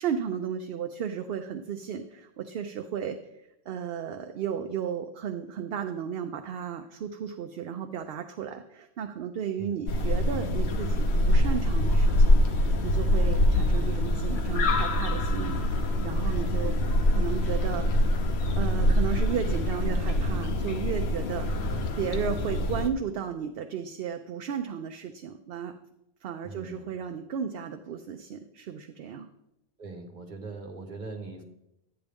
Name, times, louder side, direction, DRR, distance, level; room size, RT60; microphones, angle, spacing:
voice 1, 0.0-3.2 3.7-16.7 17.1-17.9 18.6-21.5 22.0-25.7 26.2-29.3, right 8 dB, 70° right, 6 dB, 0.8 m, -34 dB
voice 2, 9.6-9.9 21.7-22.2 26.4-26.9 29.8-31.4, right 3 dB, 50° right, 3 dB, 1.4 m, -41 dB
sound 1, 9.9-22.9, left 1 dB, 90° left, 1.0 m, -24 dB
12.0 x 8.8 x 3.5 m, 0.85 s
omnidirectional pair, 1.0 m